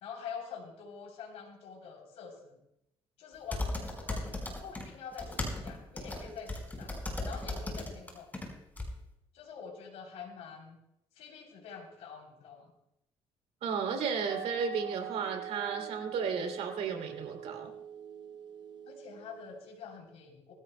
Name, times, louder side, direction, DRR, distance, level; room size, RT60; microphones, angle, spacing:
voice 1, 0.0-2.6 3.2-6.9 7.2-8.3 9.3-10.8 11.2-12.7 18.9-20.5, left 6 dB, 85° left, 0 dB, 3.4 m, -46 dB
sound 1, 3.5-4.8 5.1-8.5 8.8-8.9, left 2 dB, 15° left, 4.5 m, -36 dB
voice 2, 13.6-17.7, right 6 dB, 85° right, 3 dB, 2.8 m, -34 dB
sound 2, 14.3-19.7, right 10 dB, 45° right, 0.6 m, -43 dB
21.0 x 15.0 x 2.2 m, 0.81 s
cardioid pair, 100°, 11 cm